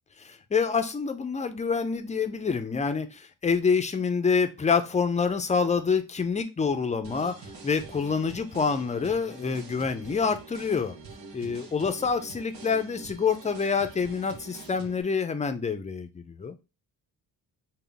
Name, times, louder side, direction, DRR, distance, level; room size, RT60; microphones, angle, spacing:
voice 1, 0.2-7.4 7.6-11.0 11.3-16.5, left 5 dB, 20° left, 9 dB, 0.4 m, -27 dB
sound 1, 7.0-15.0, right 4 dB, 80° right, 1.0 m, -45 dB
3.8 x 2.1 x 3.3 m, 0.28 s
cardioid pair, 95°, 41 cm